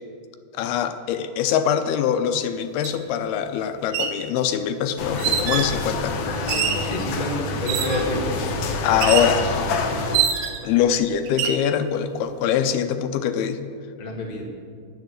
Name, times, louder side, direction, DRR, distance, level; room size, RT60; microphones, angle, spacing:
voice 1, 0.5-6.7 8.8-9.6 10.6-13.6, left 8 dB, 85° left, 9 dB, 2.7 m, -23 dB
sound 1, 2.8-2.9 3.8-4.2 5.2-5.8 6.5-6.9 7.7-8.1 9.0-9.4 10.1-10.7 11.3-11.6, right 8 dB, 80° right, 2.7 m, -24 dB
sound 2, 5.0-10.2, left 3 dB, 70° left, 1.7 m, -27 dB
voice 2, 6.8-8.3 14.0-14.4, left 1 dB, 55° left, -2 dB, 0.5 m, -28 dB
10.5 x 6.9 x 7.8 m, 2.2 s
omnidirectional pair, 4.4 m